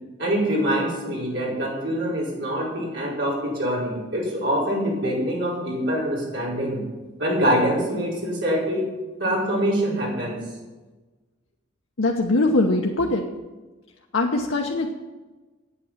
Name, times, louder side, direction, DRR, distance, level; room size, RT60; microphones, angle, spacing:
voice 1, 0.2-6.8 7.2-8.8 9.2-10.4, equal, 65° right, -5 dB, 4.8 m, -24 dB
voice 2, 12.0-13.2 14.1-14.9, left 2 dB, 80° left, 0 dB, 1.0 m, -21 dB
8.7 x 8.5 x 9.2 m, 1.2 s
head